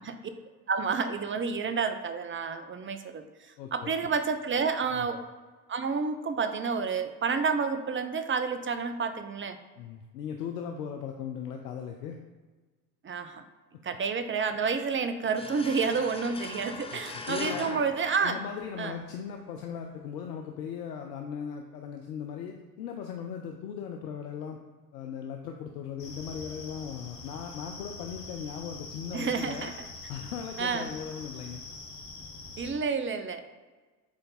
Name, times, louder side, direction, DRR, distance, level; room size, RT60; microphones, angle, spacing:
voice 1, 0.7-3.3 3.7-5.2 5.7-9.6 13.0-13.4 13.8-18.4 18.8-19.0 29.1-29.9 30.6-30.9 32.6-33.4, right 5 dB, 25° right, 9 dB, 0.8 m, -29 dB
voice 2, 3.6-3.9 4.9-5.1 9.8-12.2 16.9-17.8 18.2-24.6 24.9-31.6, left 7 dB, 80° left, 3 dB, 0.7 m, -38 dB
sound 1, 15.4-18.9, left 3 dB, 10° left, 0.7 m, -41 dB
sound 2, 26.0-32.7, left 3 dB, 60° left, 1.8 m, -44 dB
8.1 x 3.4 x 4.0 m, 1.3 s
hypercardioid pair, 60°, 47 cm